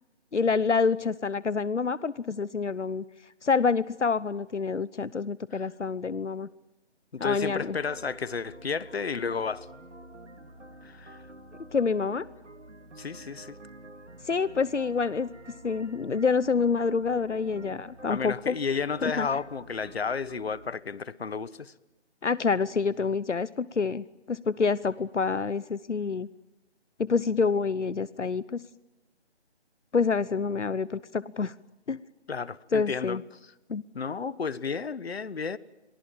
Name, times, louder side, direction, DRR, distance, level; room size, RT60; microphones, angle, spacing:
voice 1, 0.3-3.0 3.4-6.5 7.2-7.8 11.7-12.2 14.2-15.3 15.6-18.6 19.0-19.3 22.2-26.3 27.0-28.6 29.9-31.5 31.9-32.0 32.7-33.2 33.7-33.8, left 5 dB, 85° left, 1.0 m, -27 dB
voice 2, 7.1-9.7 10.8-11.2 13.0-13.6 18.1-21.7 32.3-33.2 33.9-35.6, left 5 dB, 60° left, 1.3 m, -32 dB
sound 1, 7.2-20.7, right 1 dB, 80° right, 3.2 m, -49 dB
30.0 x 23.5 x 7.4 m
figure-of-eight pair, 160°, 35 cm